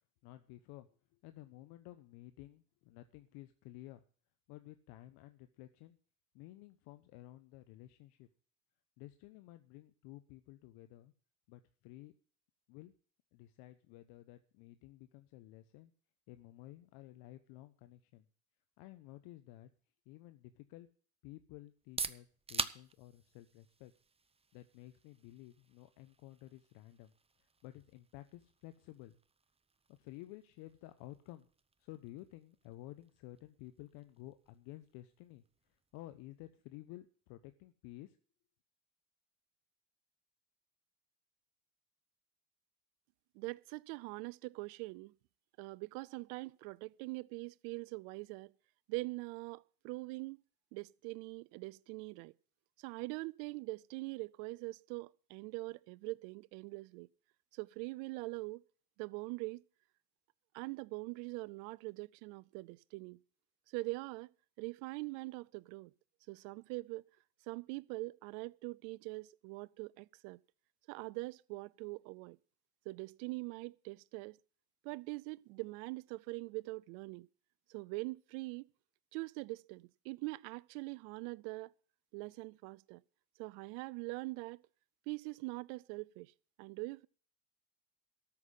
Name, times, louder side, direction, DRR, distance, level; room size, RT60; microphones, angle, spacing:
voice 1, 0.2-4.0 4.5-6.0 6.3-8.3 9.0-11.1 11.5-12.1 12.7-12.9 13.3-15.9 16.3-18.3 18.8-19.7 20.1-20.9 21.2-23.9 24.5-27.1 27.4-29.2 29.9-31.5 31.8-35.4 35.7-38.2, left 16 dB, 70° left, 1.0 m, -53 dB
sound 1, 21.7-37.3, right 4 dB, 15° right, 0.7 m, -48 dB
voice 2, 43.3-45.1 45.6-48.5 48.9-50.4 50.7-52.3 52.8-57.1 57.5-58.6 59.0-59.6 60.5-63.2 63.7-64.3 64.6-65.9 66.3-67.0 67.5-70.4 70.9-72.4 72.9-74.4 74.8-77.3 77.7-78.7 79.1-81.7 82.1-83.0 83.4-84.6 85.1-86.3 86.6-87.1, right 24 dB, 75° right, 0.6 m, -43 dB
13.5 x 6.0 x 9.6 m
supercardioid pair, 85°, 39 cm